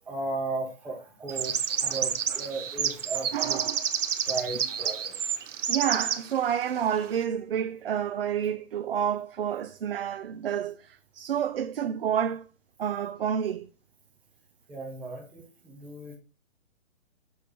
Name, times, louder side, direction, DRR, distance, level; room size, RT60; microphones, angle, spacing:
voice 1, 0.0-3.6 4.2-5.2 14.7-16.2, right 3 dB, 5° right, 0.7 m, -36 dB
sound 1, 1.3-6.2, right 8 dB, 65° right, 0.8 m, -29 dB
voice 2, 3.3-3.9 5.7-12.5 12.8-13.7, right 9 dB, 50° right, 0.4 m, -29 dB
6.9 x 3.3 x 5.0 m
hypercardioid pair, 155°, 39 cm